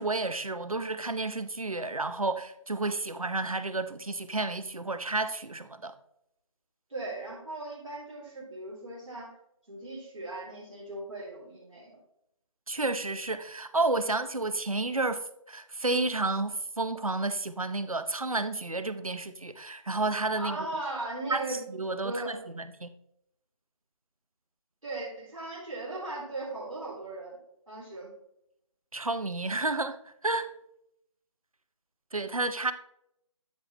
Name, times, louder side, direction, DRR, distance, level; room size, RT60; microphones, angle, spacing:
voice 1, 0.0-5.9 12.7-15.2 15.5-20.6 21.3-22.9 28.9-30.5 32.1-32.7, right 2 dB, 85° right, 0.7 m, -31 dB
voice 2, 6.9-9.3 9.7-12.0 20.3-21.7 22.0-22.3 24.8-27.4 27.7-28.1, right 2 dB, 70° right, 3.3 m, -38 dB
12.5 x 4.7 x 3.1 m
figure-of-eight pair, 155°, 17 cm